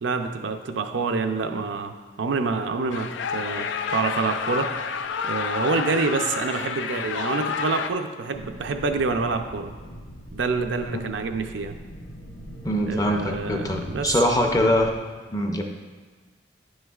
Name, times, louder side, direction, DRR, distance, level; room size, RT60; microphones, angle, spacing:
voice 1, 0.0-5.0 5.3-9.7 10.3-11.8 12.9-14.2, right 4 dB, 85° right, 6 dB, 0.5 m, -27 dB
sound 1, 2.9-7.9, left 6 dB, 90° left, 0.4 m, -29 dB
sound 2, 8.3-15.0, equal, 70° left, 1.2 m, -41 dB
voice 2, 12.6-14.9 15.3-15.6, left 1 dB, 20° left, 3 dB, 0.5 m, -23 dB
10.0 x 6.3 x 2.4 m, 1.4 s
head